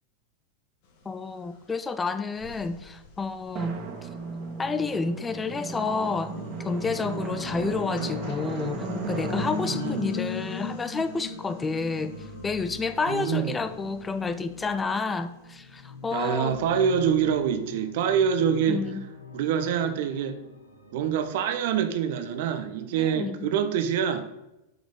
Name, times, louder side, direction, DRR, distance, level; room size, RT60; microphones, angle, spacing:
voice 1, 1.1-4.1 4.6-6.4 6.6-16.6 18.7-19.1 23.0-23.5, left 4 dB, 15° left, 11 dB, 0.4 m, -30 dB
sound 1, 1.6-1.7 2.3-4.6 5.2-16.5, left 5 dB, 50° left, 1.5 m, -40 dB
Drum, 3.5-11.8, right 2 dB, 35° right, 1.8 m, -36 dB
sound 2, 6.4-14.8 15.5-21.2, left 3 dB, 85° left, 1.2 m, -46 dB
voice 2, 9.6-10.1 13.1-13.6 16.1-18.8 19.3-20.4 20.9-24.3, right 8 dB, 50° right, 10 dB, 0.8 m, -25 dB
8.0 x 5.0 x 5.2 m, 0.94 s
figure-of-eight pair, 90°, 0 cm